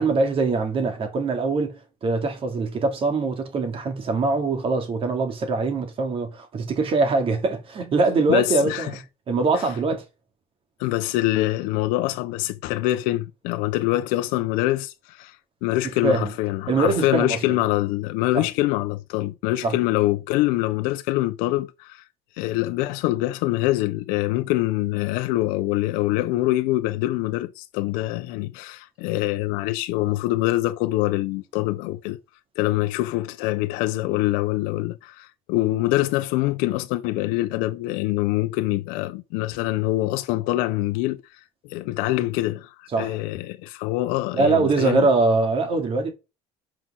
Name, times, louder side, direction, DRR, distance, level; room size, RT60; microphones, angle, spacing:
voice 1, 0.0-10.0 16.0-16.3 16.7-17.4 18.3-18.5 19.6-19.8 42.9-43.2 44.3-46.1, right 3 dB, 40° right, 2.6 m, -23 dB
voice 2, 8.3-8.9 9.6-9.7 10.8-15.4 15.6-22.0 22.4-32.2 32.6-45.1, left 17 dB, 85° left, 0.7 m, -24 dB
5.9 x 5.7 x 6.3 m
cardioid pair, 115°, 14 cm